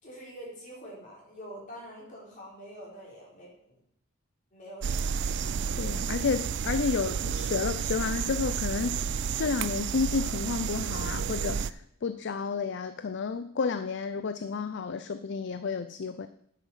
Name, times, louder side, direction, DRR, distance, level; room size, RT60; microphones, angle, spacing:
voice 1, 0.0-3.8 4.5-5.3, equal, 40° left, -4 dB, 4.6 m, -46 dB
sound 1, 4.8-11.7, right 6 dB, 60° right, 0.4 m, -31 dB
voice 2, 5.8-9.0 9.4-16.3, left 5 dB, 60° left, 12 dB, 0.5 m, -31 dB
9.3 x 8.3 x 5.6 m, 0.70 s
head